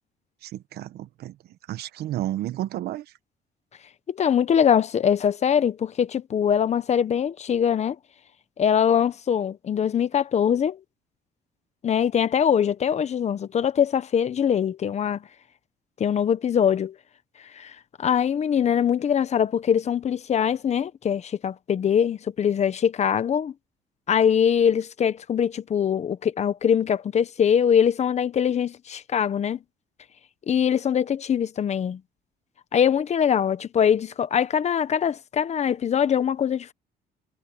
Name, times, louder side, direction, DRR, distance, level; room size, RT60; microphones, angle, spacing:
voice 1, 0.4-1.4 1.7-3.1, right 13 dB, 70° right, 1.1 m, -31 dB
voice 2, 4.1-8.0 8.6-10.8 11.8-15.2 16.0-17.0 17.5-17.7 18.0-23.5 24.1-29.6 30.5-32.0 32.7-36.7, left 8 dB, 40° left, 1.0 m, -22 dB
cardioid pair, 110°, 17 cm